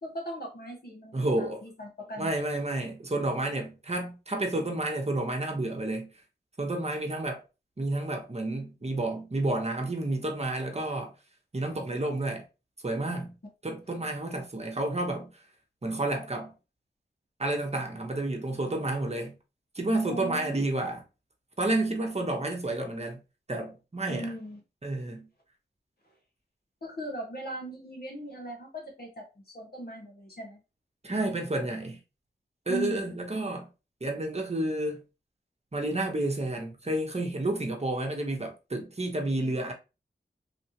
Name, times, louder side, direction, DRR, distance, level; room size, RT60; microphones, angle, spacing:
voice 1, 0.0-2.3 20.1-20.6 24.1-24.6 26.8-30.6 32.7-33.1, right 1 dB, 60° left, 1.4 m, -39 dB
voice 2, 1.1-1.6 2.2-6.1 6.6-7.4 7.8-11.1 11.5-12.4 12.8-13.3 13.6-15.3 15.8-16.5 17.4-19.3 19.7-21.0 21.6-23.2 23.5-24.3 24.8-25.3 31.0-32.0 32.7-33.7 34.0-35.0 35.7-39.7, right 2 dB, 35° right, 1.0 m, -30 dB
3.3 x 2.7 x 2.8 m
cardioid pair, 45°, 18 cm